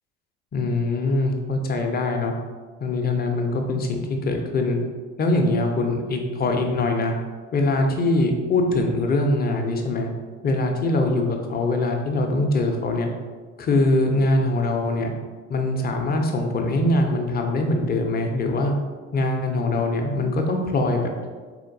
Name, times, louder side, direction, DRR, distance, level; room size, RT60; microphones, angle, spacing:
voice 1, 0.5-2.3 2.8-4.8 5.2-7.1 7.5-10.1 10.4-13.1 13.6-15.1 15.5-18.7 19.1-21.1, left 2 dB, 25° left, 3 dB, 0.6 m, -22 dB
3.7 x 2.8 x 2.6 m, 1.5 s
hypercardioid pair, 65°, 35 cm